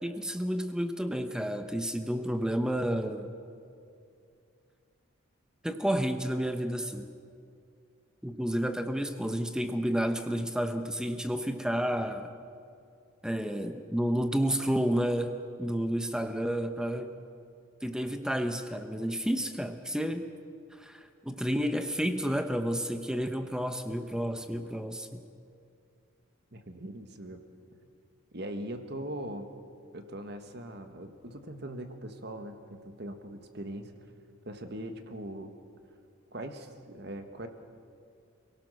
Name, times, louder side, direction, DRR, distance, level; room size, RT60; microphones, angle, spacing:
voice 1, 0.0-3.3 5.6-7.1 8.2-12.3 13.2-17.1 17.8-20.2 20.8-25.2, equal, 5° right, 7 dB, 0.8 m, -31 dB
voice 2, 26.5-27.4 28.3-29.5 29.9-33.9 34.4-35.5 36.3-37.5, right 1 dB, 50° right, 7 dB, 1.6 m, -40 dB
28.5 x 18.0 x 6.5 m, 2.4 s
head